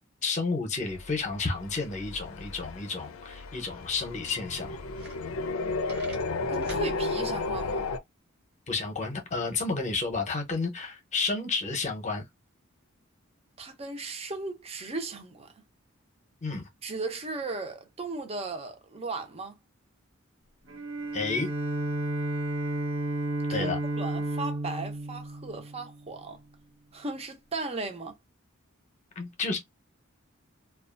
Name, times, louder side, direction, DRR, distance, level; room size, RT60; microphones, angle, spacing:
voice 1, 0.2-4.8 8.7-12.2 16.4-16.7 21.1-21.5 23.5-23.8 29.2-29.6, left 4 dB, 35° left, 0.7 m, -31 dB
sound 1, 0.9-8.0, left 3 dB, 90° left, 0.4 m, -33 dB
sound 2, 4.9-5.6 5.8-6.9, right 3 dB, 50° right, 1.0 m, -46 dB
voice 2, 6.5-7.9 13.6-15.5 16.8-19.6 23.5-26.4 26.9-28.2, right 3 dB, 30° right, 0.6 m, -36 dB
Bowed string instrument, 20.7-26.2, right 2 dB, 80° right, 0.8 m, -32 dB
2.6 x 2.3 x 2.4 m
head